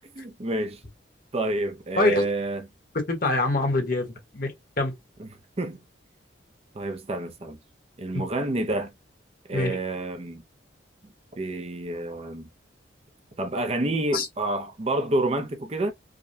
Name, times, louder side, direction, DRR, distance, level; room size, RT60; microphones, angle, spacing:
voice 1, 0.1-0.8 1.3-2.6 5.2-5.3 5.6-5.8 6.7-7.6 8.0-8.9 9.5-10.4 11.4-12.5 13.4-15.9, right 2 dB, 30° right, 0.6 m, -28 dB
voice 2, 3.1-4.9 8.1-8.3 9.5-9.8 14.1-14.3, left 2 dB, 50° left, 1.2 m, -25 dB
4.9 x 2.2 x 2.6 m
head